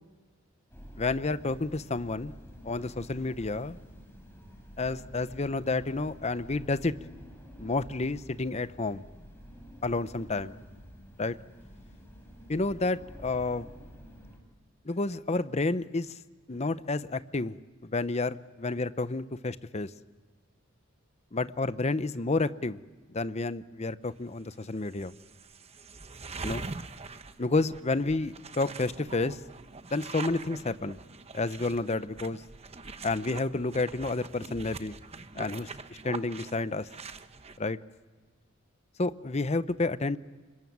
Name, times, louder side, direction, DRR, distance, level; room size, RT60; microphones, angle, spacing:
sound 1, 0.7-14.4, equal, 10° left, 5.7 m, -49 dB
voice 1, 1.0-2.3 2.6-3.8 4.8-6.9 7.6-9.0 9.8-10.6 11.2-11.4 12.5-13.7 14.8-16.2 16.5-17.6 17.8-19.9 21.3-22.8 23.1-25.1 26.4-26.6 27.4-29.4 29.9-31.0 31.3-32.4 33.0-35.0 35.3-35.7 36.0-36.9 37.6-37.8 39.0-40.2, left 3 dB, 35° left, 14 dB, 0.8 m, -30 dB
sound 2, 24.4-24.5 24.9-37.6, right 3 dB, 30° right, 1.0 m, -43 dB
26.0 x 22.0 x 9.4 m, 1.4 s
head